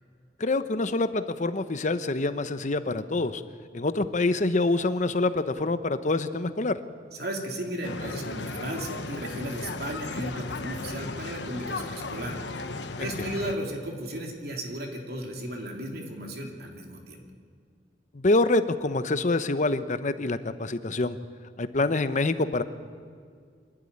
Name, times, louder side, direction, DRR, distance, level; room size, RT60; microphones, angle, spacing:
voice 1, 0.4-3.4 3.7-6.8 13.0-13.3 18.1-21.2 21.6-22.6, left 2 dB, 45° left, 11 dB, 0.9 m, -26 dB
voice 2, 7.2-12.4 13.0-17.2, right 1 dB, 65° right, 1 dB, 2.8 m, -35 dB
sound 1, 7.8-13.5, left 3 dB, 90° left, 1.2 m, -36 dB
25.5 x 12.0 x 9.6 m, 2.1 s
head